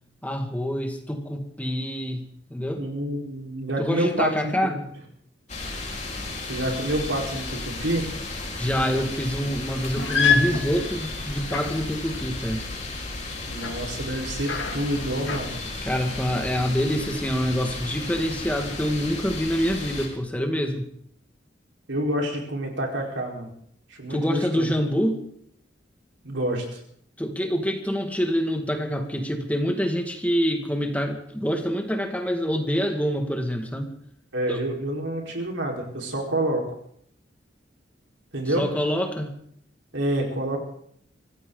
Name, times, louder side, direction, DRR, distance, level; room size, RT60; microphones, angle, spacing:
voice 1, 0.2-2.9 3.8-4.7 8.6-12.6 15.8-20.9 24.1-25.2 27.2-33.9 34.5-34.6 38.6-39.4, equal, 10° left, 4 dB, 1.9 m, -26 dB
voice 2, 2.8-4.7 6.5-8.1 13.5-15.5 21.9-23.5 23.9-24.7 26.2-26.8 34.3-36.6 38.3-38.7 39.9-40.6, right 1 dB, 90° right, 0 dB, 4.3 m, -28 dB
sound 1, 5.5-20.1, left 2 dB, 40° left, 4.1 m, -34 dB
sound 2, 9.7-15.5, left 6 dB, 75° left, 2.4 m, -29 dB
24.0 x 15.5 x 3.9 m, 0.68 s
head